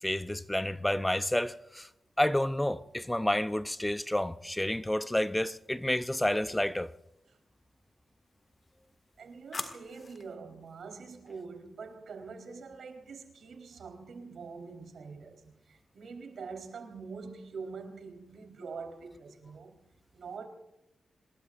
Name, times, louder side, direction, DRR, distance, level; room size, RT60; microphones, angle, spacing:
voice 1, 0.0-1.9 2.2-6.9, left 1 dB, 10° left, 0.6 m, -30 dB
sound 1, 5.2-5.9 8.3-10.4, left 3 dB, 40° left, 1.9 m, -45 dB
voice 2, 9.2-19.8 20.1-20.5, right 4 dB, 80° right, 3.9 m, -44 dB
27.0 x 21.0 x 2.5 m
wide cardioid pair, 100°, 0 cm